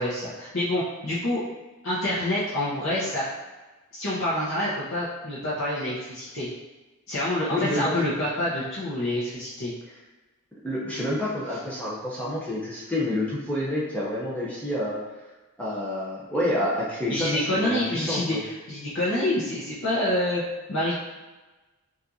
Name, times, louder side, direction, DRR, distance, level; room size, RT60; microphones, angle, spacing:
voice 1, 0.0-1.4 1.8-3.3 3.9-6.5 7.1-9.7 17.1-20.4 20.7-21.0, left 1 dB, 60° left, -8 dB, 0.8 m, -27 dB
voice 2, 7.5-8.0 10.6-15.0 15.6-18.4, left 1 dB, 5° left, -7 dB, 0.6 m, -28 dB
5.7 x 2.5 x 2.6 m, 1.2 s
head